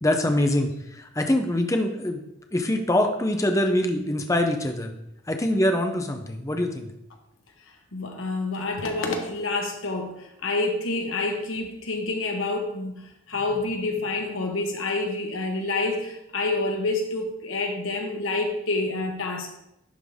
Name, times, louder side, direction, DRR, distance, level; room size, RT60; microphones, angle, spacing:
voice 1, 0.0-2.2 2.5-4.9 5.3-6.9, left 1 dB, 15° left, 0.6 m, -24 dB
voice 2, 7.9-19.5, left 2 dB, 80° left, 1.2 m, -28 dB
11.0 x 3.9 x 3.5 m
head